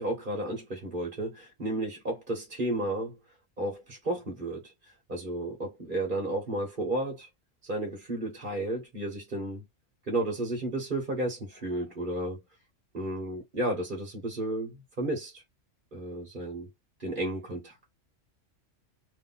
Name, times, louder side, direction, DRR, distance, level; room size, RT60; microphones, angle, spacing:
voice 1, 0.0-3.2 3.6-4.7 5.1-7.3 7.6-9.6 10.1-12.4 12.9-15.4 15.9-16.7 17.0-17.8, right 1 dB, 40° right, 1.5 m, -32 dB
3.3 x 2.8 x 4.0 m
omnidirectional pair, 1.3 m